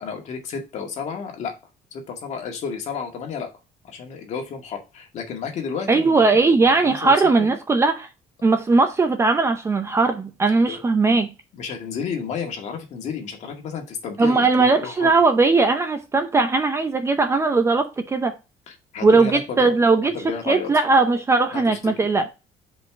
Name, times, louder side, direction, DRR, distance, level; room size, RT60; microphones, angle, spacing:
voice 1, 0.0-1.5 1.9-3.5 3.8-7.1 7.4-7.5 10.7-10.8 11.5-15.2 18.7-19.7 20.1-20.7 21.5-21.9, left 6 dB, 50° left, 2.0 m, -32 dB
voice 2, 5.9-8.1 8.4-11.3 14.2-18.3 19.0-20.1 20.5-22.3, right 3 dB, 20° right, 0.7 m, -19 dB
5.2 x 4.2 x 6.0 m
cardioid pair, 160°, 15 cm